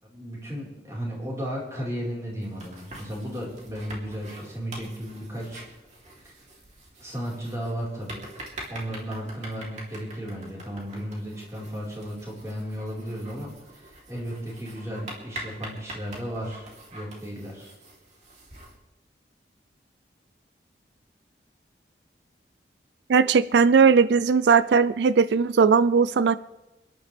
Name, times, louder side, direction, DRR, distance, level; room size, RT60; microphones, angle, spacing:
voice 1, 0.0-5.6 6.2-6.3 7.0-8.3 8.7-17.7, equal, 20° right, -5 dB, 4.4 m, -34 dB
sound 1, 2.4-18.8, right 1 dB, 40° right, 3.1 m, -45 dB
voice 2, 23.1-26.4, right 5 dB, 85° right, 15 dB, 0.4 m, -18 dB
29.5 x 11.0 x 3.4 m, 1.0 s
head